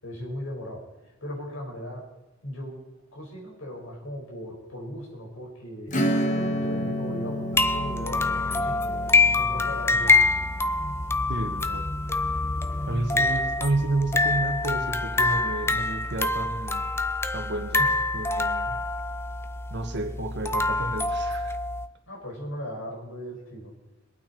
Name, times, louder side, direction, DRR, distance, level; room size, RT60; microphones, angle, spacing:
voice 1, 0.0-2.0 2.4-2.8 3.1-5.9 6.3-10.1 13.1-13.3 17.8-17.9 22.1-23.7, equal, 80° left, -2 dB, 5.2 m, -38 dB
Acoustic guitar / Strum, 5.9-12.1, equal, 40° left, 1.6 m, -31 dB
sound 1, 7.5-21.9, left 3 dB, 15° left, 0.5 m, -25 dB
voice 2, 11.3-11.8 12.9-16.8 17.3-17.8 18.1-18.8 19.7-21.6, right 2 dB, 60° right, 5 dB, 1.6 m, -30 dB
22.5 x 9.0 x 4.4 m, 1.0 s
head